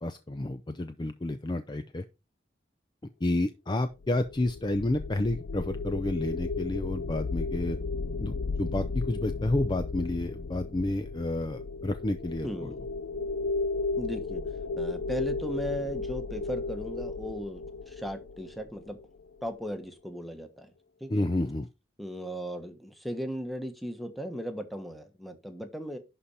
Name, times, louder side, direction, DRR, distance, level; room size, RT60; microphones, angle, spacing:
voice 1, 0.0-2.0 3.2-7.8 8.2-12.5 21.1-21.7, left 1 dB, 25° left, 9 dB, 0.5 m, -30 dB
sound 1, 4.0-19.2, left 3 dB, 75° left, 0.6 m, -34 dB
voice 2, 12.4-12.8 14.0-14.4 14.8-19.0 19.4-20.7 21.0-21.2 22.0-26.0, equal, ahead, 7 dB, 1.2 m, -37 dB
11.0 x 4.2 x 4.9 m, 0.28 s
head